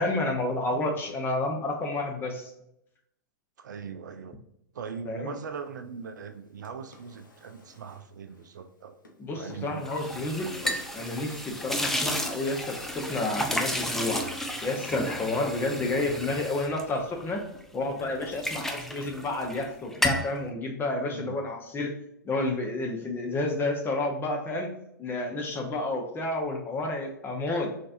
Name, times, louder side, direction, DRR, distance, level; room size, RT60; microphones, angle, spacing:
voice 1, 0.0-2.5 5.1-5.3 9.2-10.5 10.9-14.3 14.6-17.4 17.7-21.9 22.2-24.7 25.0-27.7, left 2 dB, 20° left, 2 dB, 1.0 m, -30 dB
voice 2, 3.6-4.4 4.7-8.9 9.3-9.8 21.0-21.4, right 6 dB, 70° right, 8 dB, 0.5 m, -40 dB
Drawer open or close, 6.3-8.7 9.0-11.4 11.8-12.5, left 2 dB, 85° left, 0.8 m, -47 dB
sound 1, 9.8-17.6 18.0-19.7 19.9-20.3, equal, 5° left, 0.5 m, -32 dB
4.0 x 3.3 x 2.6 m, 0.78 s
figure-of-eight pair, 105°, 10 cm